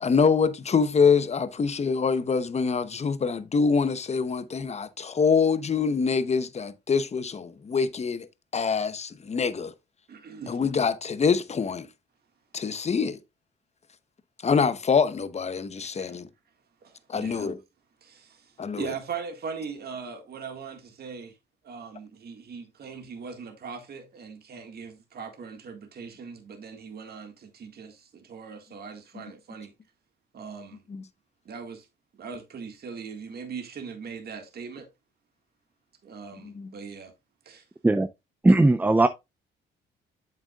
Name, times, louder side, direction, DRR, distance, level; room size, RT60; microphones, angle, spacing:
voice 1, 0.0-8.3 8.5-9.7 10.5-11.9 12.5-13.2 14.4-16.3 17.1-17.6 18.6-18.9 30.9-31.0 36.4-36.7, left 5 dB, 35° left, 0.9 m, -25 dB
voice 2, 10.1-10.6 15.8-16.2 16.8-17.5 18.0-21.4 21.6-29.7 30.3-30.8 31.5-31.9 32.2-34.9 36.0-37.1 37.5-37.6, right 5 dB, 55° right, 1.8 m, -40 dB
voice 3, 38.4-39.1, right 2 dB, 10° right, 0.4 m, -18 dB
7.9 x 7.5 x 2.4 m
cardioid pair, 90°, 20 cm